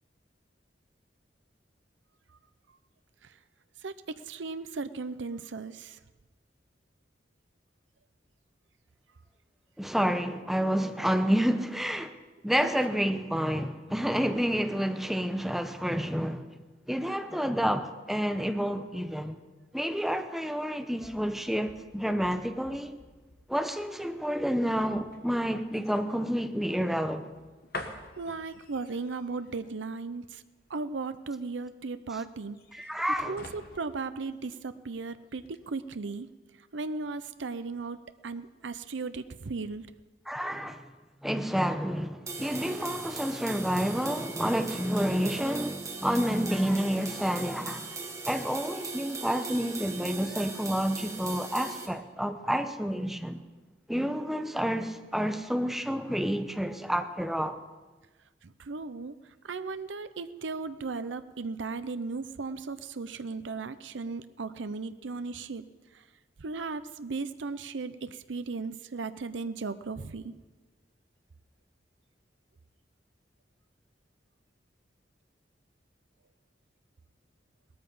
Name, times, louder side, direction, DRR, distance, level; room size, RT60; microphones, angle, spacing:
voice 1, 3.8-6.0 12.6-13.0 28.2-30.4 30.7-32.9 33.2-36.3 36.7-38.0 38.2-39.9 58.4-59.1 59.4-65.6 66.4-70.3, right 4 dB, 85° right, 0.6 m, -36 dB
voice 2, 9.8-12.2 12.4-16.5 16.9-19.4 19.7-23.0 23.5-27.3 32.7-33.4 40.3-40.9 41.2-48.0 48.3-53.4 53.9-57.6, equal, ahead, 0.8 m, -29 dB
sound 1, 20.6-35.0 35.3-35.6, left 2 dB, 55° left, 1.4 m, -49 dB
sound 2, 42.3-51.9, right 4 dB, 15° right, 1.6 m, -39 dB
18.5 x 13.5 x 5.5 m
head